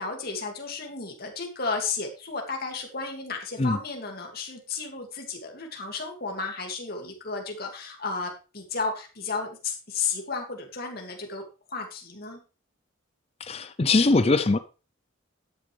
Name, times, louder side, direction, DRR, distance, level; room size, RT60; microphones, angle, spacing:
voice 1, 0.0-11.4 11.7-12.4, left 4 dB, 50° left, 2.3 m, -33 dB
voice 2, 13.4-14.6, left 3 dB, 30° left, 0.5 m, -21 dB
13.0 x 9.2 x 3.3 m
head